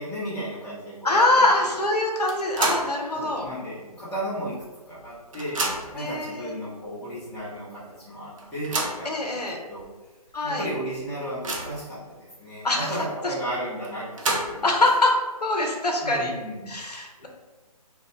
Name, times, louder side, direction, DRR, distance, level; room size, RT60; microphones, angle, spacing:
voice 1, 0.0-1.8 3.1-4.5 4.8-5.6 5.9-9.8 10.4-14.7 16.0-16.7, right 1 dB, 5° left, -12 dB, 0.6 m, -34 dB
voice 2, 1.0-3.5 5.9-6.5 9.0-9.6 10.3-10.7 12.6-12.9 13.2-13.3 14.6-16.3 16.7-17.3, left 2 dB, 80° left, 1 dB, 0.6 m, -23 dB
sound 1, 2.3-3.0 3.4-3.5 4.6-4.7 5.0-6.1 6.8-6.9 7.3-7.4 8.4-9.1 9.8-9.9 10.3-10.4 10.9-11.9 13.8-14.8, right 2 dB, 55° right, 0.5 m, -29 dB
2.2 x 2.1 x 2.9 m, 1.2 s
figure-of-eight pair, 140°, 20 cm